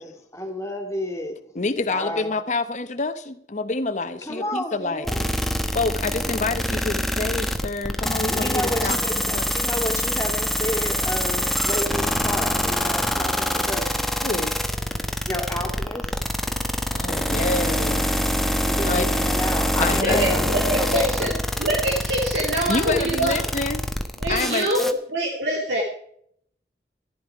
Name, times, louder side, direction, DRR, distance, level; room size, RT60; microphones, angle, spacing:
voice 1, 0.0-1.4 1.9-2.4 4.3-5.3 8.3-14.1 15.3-16.2 18.6-20.5 20.8-21.0, left 1 dB, 15° left, 4 dB, 2.5 m, -31 dB
voice 2, 1.5-5.1 5.7-9.5 14.2-14.6 16.9-18.1 18.8-19.1 19.8-20.5 22.7-23.8 24.3-24.7, left 3 dB, 45° left, 10 dB, 0.9 m, -27 dB
sound 1, 5.1-24.9, equal, ahead, 1.0 m, -25 dB
voice 3, 20.0-21.3 21.6-23.4 24.2-25.8, right 1 dB, 80° right, -2 dB, 2.6 m, -24 dB
14.5 x 12.0 x 4.8 m, 0.66 s
head